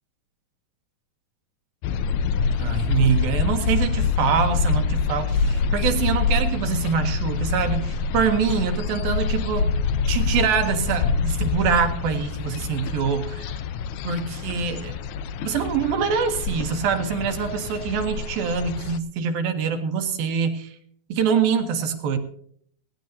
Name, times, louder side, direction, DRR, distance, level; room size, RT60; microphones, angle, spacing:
sound 1, 1.8-19.0, left 5 dB, 80° left, 1.7 m, -26 dB
voice 1, 2.6-9.7 10.1-13.6 14.1-15.0 15.4-20.8 21.1-22.2, right 6 dB, 75° right, 6 dB, 3.6 m, -24 dB
19.0 x 17.5 x 2.7 m, 0.62 s
omnidirectional pair, 4.2 m